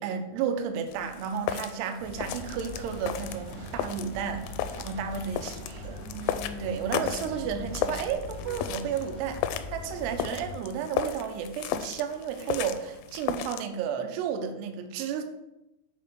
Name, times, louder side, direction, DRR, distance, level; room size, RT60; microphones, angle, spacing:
voice 1, 0.0-6.1 6.6-15.2, right 7 dB, 80° right, 6 dB, 2.4 m, -32 dB
sound 1, 0.9-13.7, left 10 dB, 85° left, 3.1 m, -35 dB
sound 2, 2.0-10.6, left 2 dB, 60° left, 3.0 m, -42 dB
sound 3, 2.3-10.3, right 1 dB, 55° right, 1.5 m, -45 dB
8.1 x 3.6 x 6.2 m, 0.89 s
omnidirectional pair, 5.8 m